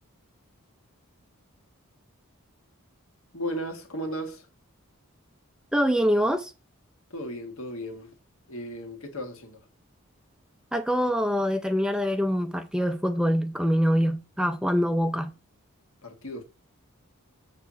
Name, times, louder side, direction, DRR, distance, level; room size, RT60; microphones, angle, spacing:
voice 1, 3.3-4.5 7.1-8.2 8.5-9.7 16.0-16.4, equal, 70° left, 1.7 m, -35 dB
voice 2, 5.7-6.5 10.7-15.3, equal, 5° right, 0.4 m, -24 dB
7.0 x 4.2 x 6.2 m
head